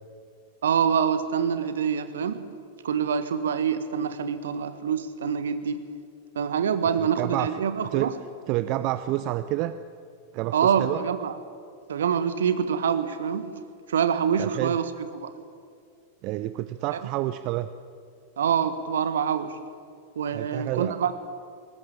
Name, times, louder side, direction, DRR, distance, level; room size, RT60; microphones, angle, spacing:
voice 1, 0.6-2.4 2.8-5.8 6.3-8.1 10.5-11.4 11.9-13.5 13.9-14.9 15.2-15.3 16.9-17.0 18.4-19.6 20.1-21.1, right 7 dB, 65° right, 11 dB, 1.6 m, -25 dB
voice 2, 7.0-7.5 7.8-8.1 8.5-9.8 10.3-11.0 14.4-14.8 16.2-17.7 20.3-21.1, right 15 dB, 40° right, 12 dB, 0.7 m, -29 dB
21.5 x 18.5 x 8.9 m, 2.3 s
figure-of-eight pair, 90°, 0 cm